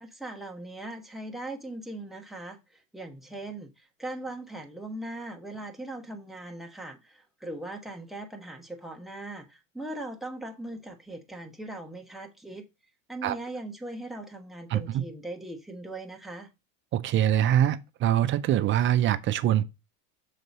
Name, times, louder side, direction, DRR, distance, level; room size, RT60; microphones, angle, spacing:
voice 1, 0.0-12.6 13.1-16.5, right 1 dB, ahead, 1.2 m, -40 dB
voice 2, 14.7-15.0 16.9-19.6, right 11 dB, 25° right, 0.4 m, -24 dB
6.6 x 4.0 x 5.3 m
supercardioid pair, 120°, 49 cm